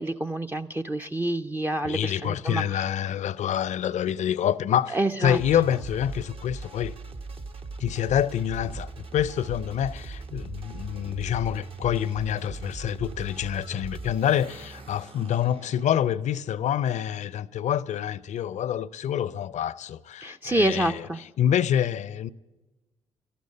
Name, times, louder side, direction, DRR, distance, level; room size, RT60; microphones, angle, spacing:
voice 1, 0.0-2.8 4.9-5.4 20.2-21.2, right 1 dB, 15° right, 0.5 m, -27 dB
voice 2, 1.8-6.9 7.8-21.1 21.4-22.3, left 10 dB, 55° left, 0.5 m, -27 dB
sound 1, 5.2-16.3, right 3 dB, 40° right, 0.9 m, -40 dB
13.0 x 11.5 x 8.4 m
hypercardioid pair, 45°, 14 cm